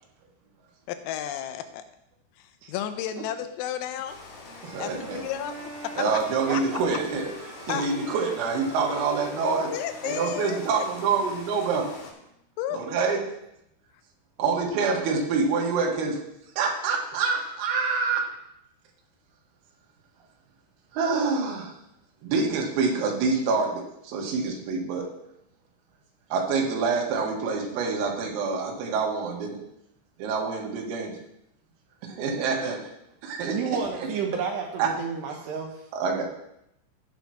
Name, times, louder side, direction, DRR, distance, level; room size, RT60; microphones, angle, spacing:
voice 1, 0.9-1.8 2.4-4.2 4.8-5.6 5.8-5.9 6.5-6.6 7.7-7.9 9.7-10.9 12.6-12.8, left 10 dB, 85° left, 9 dB, 3.4 m, -32 dB
Rain, 4.1-12.1, left 3 dB, 65° left, 1.8 m, -44 dB
Wind instrument woodwind instrument, 4.4-12.3, right 1 dB, 10° right, 2.1 m, -46 dB
voice 2, 4.6-5.2 6.0-7.3 7.6-9.7 10.0-11.9 12.7-13.2 14.4-16.2 16.6-18.3 20.9-21.7 22.2-25.1 26.3-29.6 30.2-31.1 32.0-32.8 33.2-33.8 34.8-34.9 35.9-36.2, right 4 dB, 90° right, 0 dB, 4.4 m, -26 dB
voice 3, 33.5-35.9, right 6 dB, 70° right, 0 dB, 2.9 m, -31 dB
15.0 x 9.0 x 3.0 m, 0.81 s
omnidirectional pair, 6.0 m